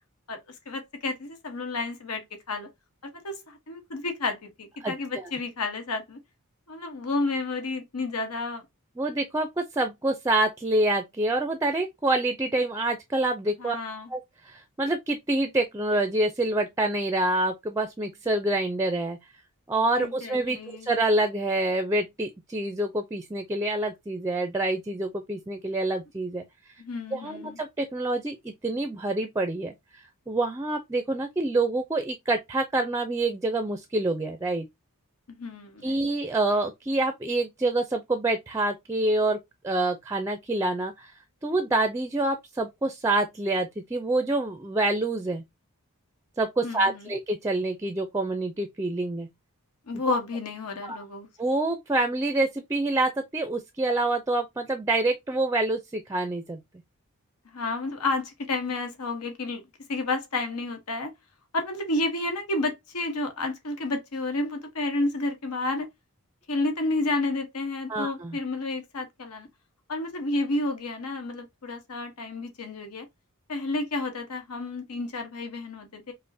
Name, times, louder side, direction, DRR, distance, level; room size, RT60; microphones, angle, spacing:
voice 1, 0.3-2.7 3.0-6.2 6.7-8.6 13.6-14.1 20.0-20.9 26.8-27.6 35.3-35.9 46.6-47.1 49.9-51.3 57.5-59.6 59.9-61.1 61.5-65.9 66.5-69.5 69.9-73.1 73.5-76.1, left 2 dB, 90° left, 1.0 m, -31 dB
voice 2, 4.8-5.3 9.0-13.8 14.1-19.2 19.7-26.4 27.1-34.7 35.8-39.4 39.6-41.1 41.4-45.4 46.4-49.3 50.1-50.2 50.8-51.0 51.4-56.6 67.9-68.4, right 2 dB, 15° right, 0.4 m, -27 dB
5.2 x 2.1 x 2.6 m
head